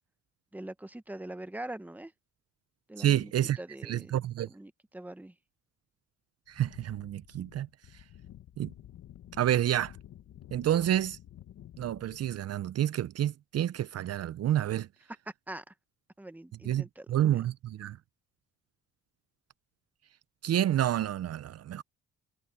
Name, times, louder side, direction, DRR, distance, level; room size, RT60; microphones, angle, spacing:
voice 1, 0.5-2.1 2.9-3.3 3.6-4.1 4.4-5.3 15.5-15.7 16.2-17.4, right 1 dB, 5° right, 1.1 m, -43 dB
voice 2, 3.0-4.5 6.5-7.7 8.6-8.7 9.4-9.9 10.5-11.2 11.8-14.9 16.6-18.0 20.4-21.8, right 11 dB, 55° right, 0.6 m, -29 dB
sound 1, 6.5-12.5, left 11 dB, 60° left, 1.3 m, -52 dB
cardioid pair, 90°, 30 cm